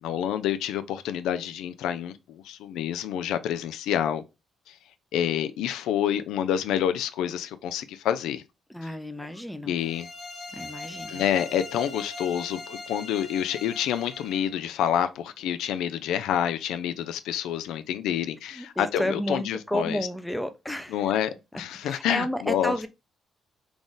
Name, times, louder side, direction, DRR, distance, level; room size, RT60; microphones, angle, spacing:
voice 1, 0.0-4.2 4.7-4.8 5.1-8.4 9.6-10.1 11.1-20.0 20.9-22.7, left 10 dB, 90° left, 0.4 m, -28 dB
voice 2, 8.7-9.8 10.5-11.2 18.5-21.1 21.8-22.9, equal, 5° left, 0.5 m, -32 dB
sound 1, 9.7-14.5, left 2 dB, 50° left, 1.3 m, -40 dB
3.5 x 2.5 x 3.8 m
cardioid pair, 90°, 0 cm